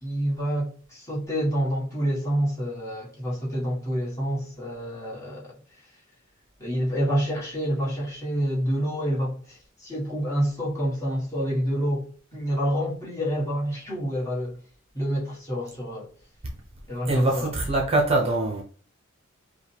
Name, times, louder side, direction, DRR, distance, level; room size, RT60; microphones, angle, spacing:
voice 1, 0.0-5.6 6.6-14.6 14.9-16.1 16.9-17.5, equal, 15° left, 1.6 m, -28 dB
voice 2, 17.1-18.6, right 2 dB, 30° right, 0.7 m, -23 dB
5.4 x 2.2 x 3.4 m
head